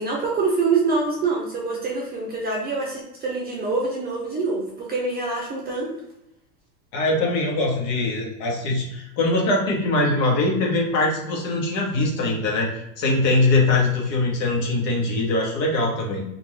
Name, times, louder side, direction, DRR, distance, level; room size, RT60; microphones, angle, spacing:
voice 1, 0.0-5.9, right 4 dB, 20° right, -3 dB, 0.7 m, -25 dB
voice 2, 6.9-16.2, left 2 dB, 50° left, -2 dB, 1.3 m, -22 dB
2.6 x 2.5 x 3.2 m, 0.83 s
hypercardioid pair, 120°, 47 cm